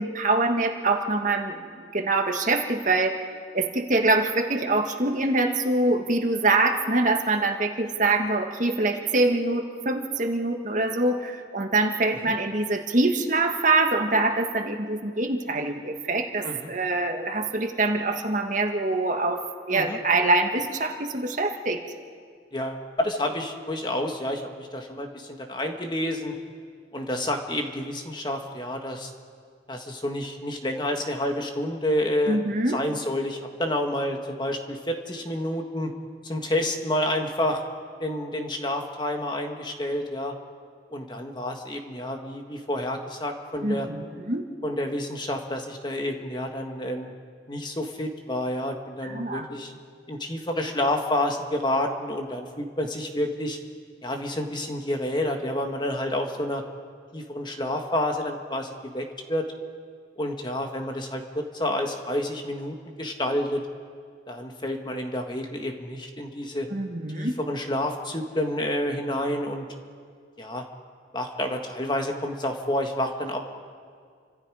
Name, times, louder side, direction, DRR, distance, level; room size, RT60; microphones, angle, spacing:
voice 1, 0.0-19.4 19.7-21.8 32.3-32.8 43.6-44.4 49.0-49.5 66.7-67.4, right 2 dB, 45° right, 4 dB, 1.6 m, -24 dB
voice 2, 22.5-26.3 26.9-29.1 29.7-32.4 32.7-35.9 36.2-37.6 38.0-40.3 40.9-43.9 44.6-47.1 47.5-49.7 50.1-53.6 54.0-56.6 57.1-59.5 60.2-63.6 64.3-66.7 67.1-69.6 70.4-70.7 71.1-73.4, left 1 dB, 25° left, 4 dB, 1.7 m, -29 dB
30.0 x 26.0 x 4.9 m, 2.1 s
head